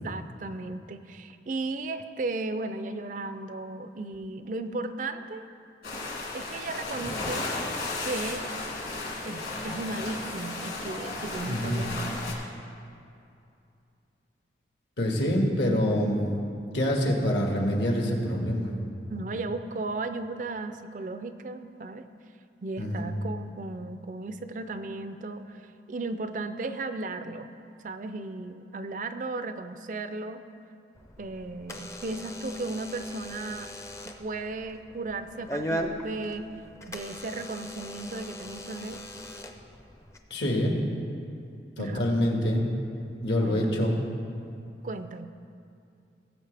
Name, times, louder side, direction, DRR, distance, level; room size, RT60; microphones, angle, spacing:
voice 1, 0.0-5.5 6.3-7.5 8.0-8.5 9.2-12.2 19.1-22.0 22.6-27.5 27.8-30.4 31.2-33.7 34.2-36.5 36.9-39.0 41.8-42.1 43.4-43.8 44.8-45.3, right 3 dB, 45° right, 10 dB, 0.4 m, -35 dB
sound 1, 5.8-12.3, left 2 dB, 55° left, 2.0 m, -34 dB
voice 2, 11.5-11.8 15.0-16.4 16.7-18.8 22.8-23.1 40.3-40.8 41.8-42.6 43.2-44.0, equal, 70° left, 0 dB, 1.6 m, -26 dB
Door / Alarm, 30.9-40.2, equal, 15° left, 0.5 m, -39 dB
18.0 x 7.9 x 3.4 m, 2.5 s
head